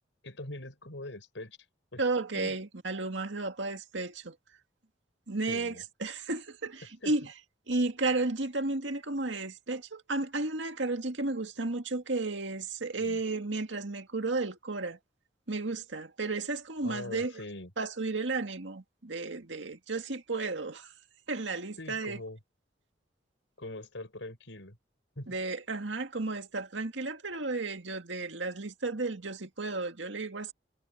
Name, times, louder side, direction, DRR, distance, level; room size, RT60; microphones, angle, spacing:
voice 1, 0.2-1.6 1.9-2.0 2.3-2.5 5.5-5.8 7.0-7.1 13.0-13.2 16.8-17.7 21.8-22.4 23.6-24.8 25.1-25.3, left 1 dB, 90° left, 5.2 m, -42 dB
voice 2, 2.0-4.3 5.3-7.3 7.7-15.0 15.5-17.3 17.8-20.9 21.3-22.2 25.3-30.5, right 3 dB, 80° right, 2.1 m, -33 dB
head